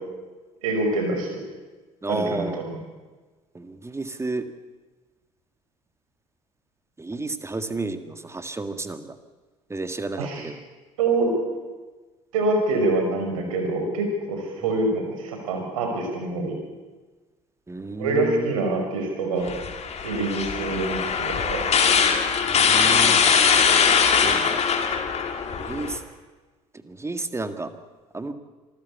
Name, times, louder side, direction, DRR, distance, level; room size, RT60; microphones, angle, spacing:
voice 1, 0.6-1.4 2.1-2.8 10.2-10.5 11.0-11.3 12.3-16.6 18.0-19.6 20.0-21.6, right 2 dB, 70° right, 3 dB, 5.4 m, -25 dB
voice 2, 2.0-2.6 3.5-4.5 7.0-9.2 9.7-10.6 14.6-14.7 17.7-18.5 22.4-23.2 24.2-24.6 25.6-26.0 26.8-27.7 28.1-28.3, right 3 dB, 15° right, 9 dB, 1.9 m, -31 dB
sound 1, 19.5-26.0, left 6 dB, 35° left, 2.6 m, -21 dB
26.0 x 14.0 x 8.5 m, 1.3 s
figure-of-eight pair, 60°, 18 cm